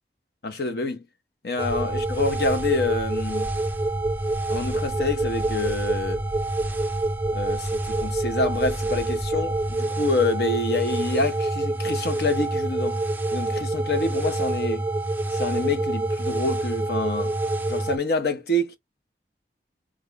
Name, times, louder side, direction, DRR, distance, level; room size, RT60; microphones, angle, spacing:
voice 1, 0.4-1.1 1.4-3.5 4.5-6.2 7.3-13.0 13.3-14.9 15.3-17.3 17.7-18.8, left 2 dB, 65° left, 0.9 m, -27 dB
sound 1, 1.6-18.0, right 2 dB, 10° right, 0.4 m, -26 dB
sound 2, 1.7-9.8, equal, 25° left, 1.9 m, -40 dB
3.7 x 2.4 x 3.1 m
head